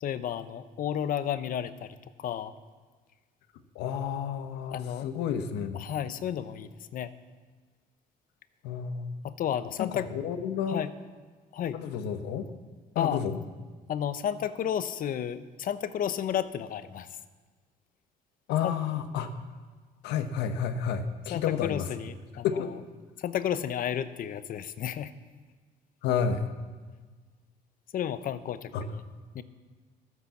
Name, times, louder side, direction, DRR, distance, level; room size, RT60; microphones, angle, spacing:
voice 1, 0.0-2.5 4.7-5.1 5.7-7.1 9.2-10.1 10.7-10.9 11.5-11.8 13.0-13.2 13.9-17.1 18.6-18.7 21.3-22.6 23.2-25.1 27.9-29.0 29.3-29.4, left 9 dB, 55° left, 13 dB, 0.8 m, -32 dB
voice 2, 3.7-5.8 8.6-9.2 9.8-10.8 11.7-12.5 12.9-13.4 18.5-19.3 20.0-21.9 22.4-22.8 26.0-26.5 28.7-28.9, left 7 dB, 90° left, 9 dB, 1.1 m, -30 dB
13.5 x 9.7 x 7.2 m, 1.4 s
cardioid pair, 110°, 17 cm